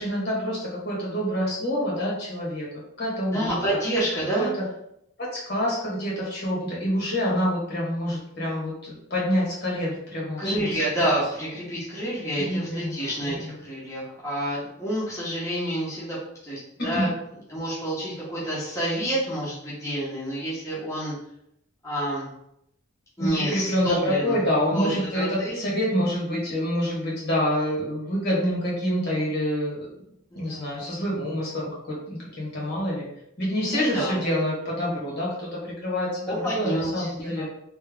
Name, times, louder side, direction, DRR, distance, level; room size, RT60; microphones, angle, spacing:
voice 1, 0.0-2.7 3.0-3.5 4.4-4.6 5.2-10.8 12.4-13.4 16.9-17.1 23.2-29.9 30.3-33.1 33.4-37.4, equal, 55° left, -5 dB, 1.5 m, -27 dB
voice 2, 3.3-4.5 10.4-16.2 16.4-17.1 17.5-21.1 21.8-22.3 23.2-24.4 24.7-25.6 30.3-30.8 33.7-34.2 36.3-37.4, right 1 dB, 15° left, -8 dB, 1.0 m, -28 dB
3.3 x 3.0 x 3.5 m, 0.77 s
head